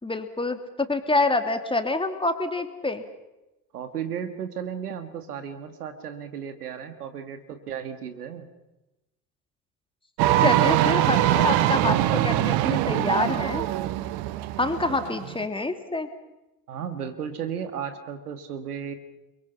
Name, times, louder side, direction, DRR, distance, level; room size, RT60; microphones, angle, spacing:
voice 1, 0.0-3.0 10.4-13.7 14.6-16.1, left 2 dB, 10° left, 7 dB, 2.7 m, -26 dB
voice 2, 3.7-8.5 14.7-15.3 16.7-18.9, right 8 dB, 75° right, 10 dB, 1.9 m, -35 dB
sound 1, 10.2-15.5, right 14 dB, 55° right, 1.3 m, -23 dB
30.0 x 22.5 x 5.8 m, 0.99 s
figure-of-eight pair, 60°, 46 cm